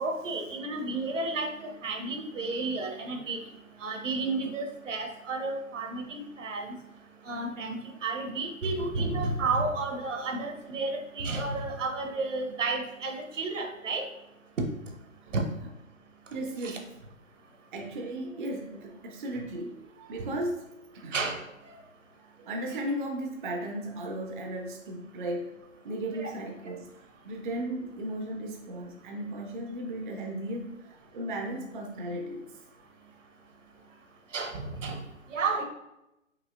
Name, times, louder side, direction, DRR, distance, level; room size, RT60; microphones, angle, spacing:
voice 1, 0.0-3.4 3.8-6.7 7.3-14.1 14.6-14.7 15.3-15.4 16.6-16.8 21.1-21.4 26.2-26.3 34.3-35.0 35.3-35.6, right 3 dB, 70° right, 4 dB, 0.8 m, -32 dB
voice 2, 16.3-16.9 17.7-21.2 22.2-26.9 27.2-32.8, right 1 dB, 40° right, 2 dB, 0.4 m, -36 dB
4.9 x 2.6 x 2.4 m, 0.91 s
figure-of-eight pair, 130°, 39 cm